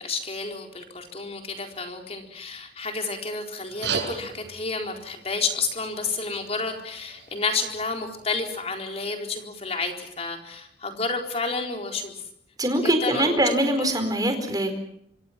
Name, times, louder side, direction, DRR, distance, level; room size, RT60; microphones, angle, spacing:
voice 1, 0.0-12.3 12.8-13.9, left 4 dB, 35° left, 3 dB, 4.2 m, -30 dB
sound 1, 3.6-8.6, right 5 dB, 75° right, 6.8 m, -37 dB
voice 2, 12.6-14.7, right 1 dB, 20° right, 6 dB, 4.5 m, -23 dB
26.0 x 26.0 x 6.0 m, 0.73 s
head